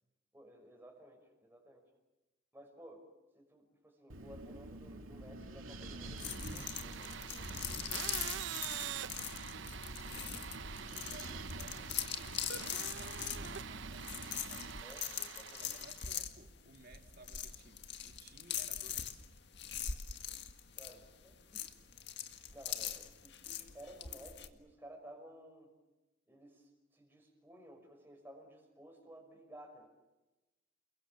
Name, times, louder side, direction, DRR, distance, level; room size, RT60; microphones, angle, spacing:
voice 1, 0.3-1.9 2.5-3.1 3.4-7.9 14.8-15.8 20.8-21.7 22.5-25.7 26.3-29.9, right 1 dB, 10° right, 2 dB, 5.7 m, -56 dB
Wind, 4.1-14.8, right 1 dB, 85° right, 2.8 m, -48 dB
sound 1, 6.0-16.2, right 8 dB, 65° right, 0.8 m, -45 dB
sound 2, 6.2-24.5, left 10 dB, 55° left, 1.9 m, -42 dB
voice 2, 10.8-14.8 15.6-19.2, right 2 dB, 50° right, 5 dB, 2.6 m, -59 dB
30.0 x 22.5 x 7.3 m, 1.1 s
head